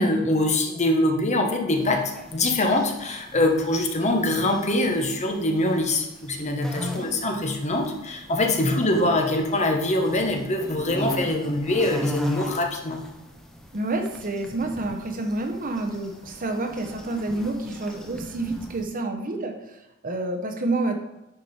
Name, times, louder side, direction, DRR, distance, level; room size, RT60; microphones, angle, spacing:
voice 1, 0.0-13.0, left 1 dB, 35° left, 2 dB, 1.1 m, -23 dB
sound 1, 1.7-18.8, equal, 5° left, 0.7 m, -41 dB
voice 2, 6.7-7.2 8.6-9.0 13.7-21.0, right 2 dB, 40° right, 5 dB, 0.9 m, -29 dB
sound 2, 10.6-12.2, left 1 dB, 80° left, 2.5 m, -43 dB
10.0 x 5.1 x 4.3 m, 0.96 s
head